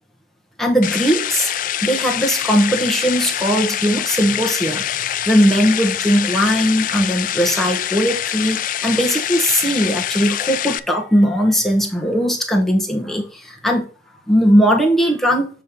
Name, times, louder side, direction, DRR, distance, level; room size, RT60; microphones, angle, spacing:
voice 1, 0.6-1.5 1.8-4.8 5.3-13.9 14.3-15.5, equal, ahead, 1.2 m, -18 dB
sound 1, 0.8-10.8, left 11 dB, 45° left, 0.3 m, -24 dB
7.3 x 3.2 x 5.3 m
head